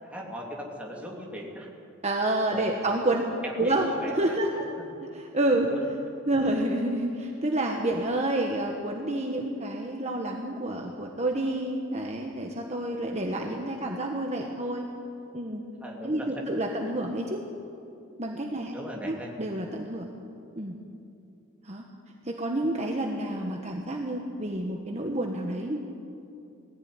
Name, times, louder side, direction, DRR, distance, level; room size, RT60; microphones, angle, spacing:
voice 1, 0.0-1.7 2.5-2.8 3.4-4.8 5.7-5.8 15.8-16.5 18.5-19.3, equal, 5° right, -2 dB, 3.0 m, -39 dB
voice 2, 2.0-3.2 3.6-4.7 5.1-5.7 6.3-14.9 15.3-15.6 16.0-17.4 18.2-18.7 19.0-20.0 20.6-20.7 21.6-21.8 22.2-25.8, right 1 dB, 35° right, 1 dB, 1.3 m, -29 dB
19.5 x 15.5 x 9.6 m, 2.7 s
head